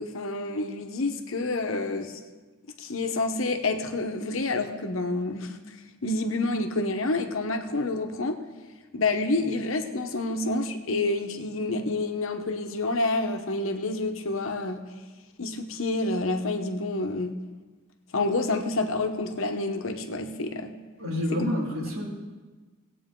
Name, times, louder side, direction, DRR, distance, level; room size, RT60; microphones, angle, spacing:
voice 1, 0.0-2.2 2.8-5.6 6.0-8.4 8.9-14.8 15.4-17.3 18.1-20.8 21.3-21.5, left 2 dB, 75° left, 6 dB, 1.0 m, -28 dB
voice 2, 21.0-22.0, left 1 dB, 85° right, -3 dB, 2.8 m, -28 dB
18.5 x 8.5 x 3.8 m, 1.3 s
head